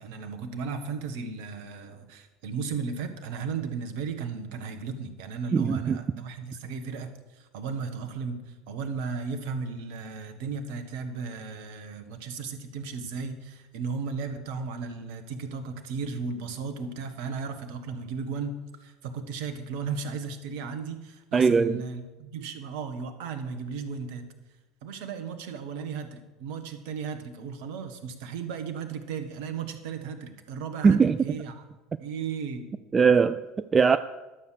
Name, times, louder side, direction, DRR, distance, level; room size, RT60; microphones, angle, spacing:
voice 1, 0.0-24.3 24.8-31.6 32.0-32.7, right 5 dB, 60° right, 1.2 m, -35 dB
voice 2, 5.5-6.0 21.3-21.8 30.8-31.4 32.9-34.0, right 5 dB, 25° right, 0.3 m, -21 dB
11.5 x 7.2 x 6.3 m
figure-of-eight pair, 70°, 0 cm